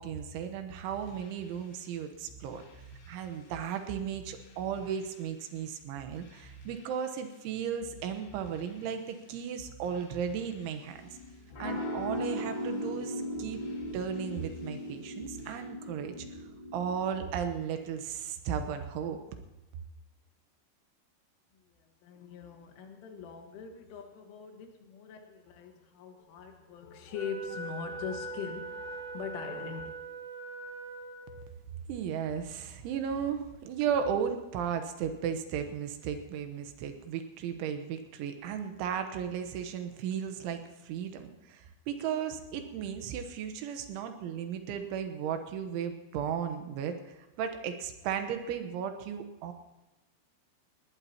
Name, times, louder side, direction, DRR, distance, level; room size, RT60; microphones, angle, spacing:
voice 1, 0.0-2.6 3.1-11.1 11.6-13.6 13.9-16.3 16.7-19.2 31.9-49.5, right 8 dB, 80° right, 7 dB, 3.4 m, -35 dB
sound 1, 0.8-15.6, right 3 dB, 65° left, 4.1 m, -54 dB
sound 2, 10.9-17.2, left 1 dB, 35° left, 2.0 m, -38 dB
voice 2, 21.5-29.9, left 6 dB, 85° left, 3 dB, 4.1 m, -42 dB
Wind instrument woodwind instrument, 27.1-31.5, right 3 dB, 30° right, 7.4 m, -41 dB
19.5 x 18.5 x 2.9 m, 1.0 s
omnidirectional pair, 5.5 m